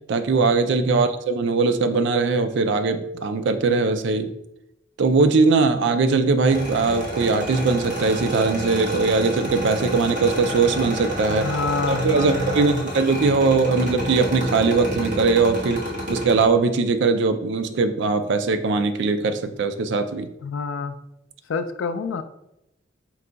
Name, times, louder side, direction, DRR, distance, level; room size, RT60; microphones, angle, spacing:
voice 1, 0.1-4.3 5.0-11.5 11.9-15.8 16.1-20.3, right 4 dB, 65° right, 9 dB, 0.4 m, -20 dB
sound 1, 6.5-16.4, right 1 dB, 45° right, 1.2 m, -29 dB
voice 2, 11.3-12.9 20.4-20.9 21.5-22.2, left 4 dB, 90° left, 9 dB, 0.3 m, -27 dB
4.6 x 2.2 x 3.8 m, 0.86 s
head